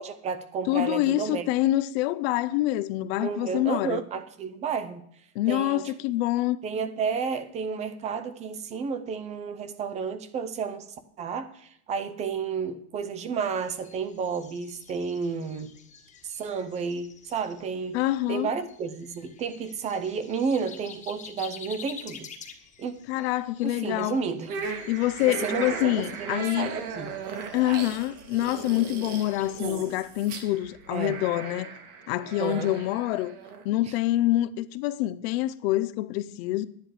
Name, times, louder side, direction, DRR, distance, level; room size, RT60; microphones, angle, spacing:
voice 1, 0.0-1.4 3.2-5.0 5.5-5.9 6.6-10.9 11.2-15.7 16.2-18.0 18.3-22.3 22.8-22.9 23.6-24.5 25.2-27.1 30.9-31.2 32.4-32.7, right 5 dB, 15° right, 0.5 m, -31 dB
voice 2, 0.7-4.0 5.3-6.6 17.9-18.5 23.1-24.2 24.9-26.7 27.5-31.7 32.1-33.3 33.6-36.7, left 15 dB, 45° left, 0.5 m, -26 dB
sound 1, 13.5-29.5, left 6 dB, 15° left, 1.3 m, -50 dB
sound 2, 24.5-33.6, right 5 dB, 75° right, 2.6 m, -37 dB
11.5 x 10.0 x 4.9 m
supercardioid pair, 160°, 45 cm